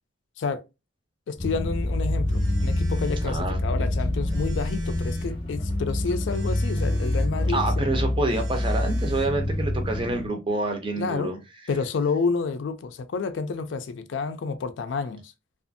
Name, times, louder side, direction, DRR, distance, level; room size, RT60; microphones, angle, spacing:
voice 1, 1.3-7.9 11.0-11.3 11.7-15.3, left 4 dB, 65° left, 0.4 m, -29 dB
sound 1, 1.4-10.3, left 1 dB, 25° left, 0.7 m, -26 dB
Telephone, 1.4-10.0, right 2 dB, 80° right, 0.9 m, -47 dB
voice 2, 3.2-3.6 7.5-11.4, right 2 dB, 25° right, 0.5 m, -27 dB
2.5 x 2.4 x 2.5 m
head